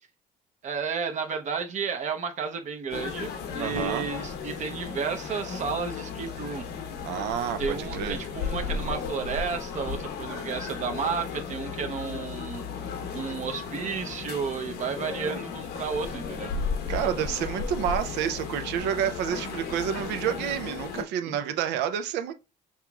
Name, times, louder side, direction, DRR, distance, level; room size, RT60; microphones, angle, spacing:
voice 1, 0.6-6.6 7.6-16.5 21.3-21.4, right 5 dB, 45° right, 0.7 m, -32 dB
sound 1, 2.9-21.0, left 5 dB, 75° left, 0.9 m, -35 dB
voice 2, 3.6-4.1 7.0-8.2 15.3-15.4 16.9-22.3, right 9 dB, 85° right, 0.6 m, -29 dB
5.6 x 2.9 x 2.3 m
cardioid pair, 110°, 17 cm